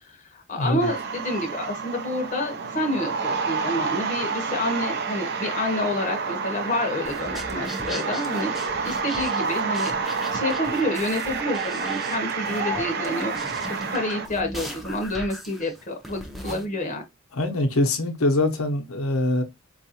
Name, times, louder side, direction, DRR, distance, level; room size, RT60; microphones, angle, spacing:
voice 1, 0.0-8.5 8.8-9.9 10.3-13.3 13.7-17.0, left 1 dB, 35° left, 0.7 m, -28 dB
voice 2, 0.5-0.9 17.3-19.4, left 2 dB, 85° left, 0.8 m, -23 dB
sound 1, 0.8-14.3, right 5 dB, 50° right, 0.5 m, -29 dB
sound 2, 7.0-16.7, equal, ahead, 0.6 m, -37 dB
4.5 x 2.4 x 2.8 m
head